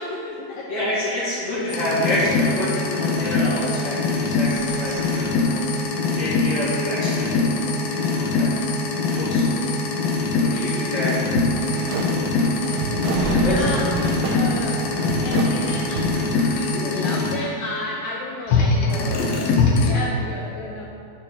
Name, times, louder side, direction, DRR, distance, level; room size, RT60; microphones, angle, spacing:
voice 1, 0.0-0.9 1.5-1.7 10.5-10.7 12.6-20.9, left 2 dB, 90° left, -3 dB, 2.0 m, -33 dB
voice 2, 0.7-5.6 6.2-8.8 9.1-9.8 10.4-11.6 13.1-13.8 16.3-16.7, left 1 dB, 50° left, -10 dB, 2.3 m, -28 dB
sound 1, 1.7-17.3 18.5-19.9, left 3 dB, 75° left, 2.5 m, -23 dB
sound 2, 3.9-7.7 8.2-8.3 8.7-9.1 9.5-9.6 10.0-10.1 13.1-15.8, right 2 dB, 65° right, 2.7 m, -34 dB
sound 3, 11.4-16.4, right 5 dB, 85° right, 2.0 m, -29 dB
12.5 x 4.8 x 3.6 m, 2.6 s
omnidirectional pair, 4.7 m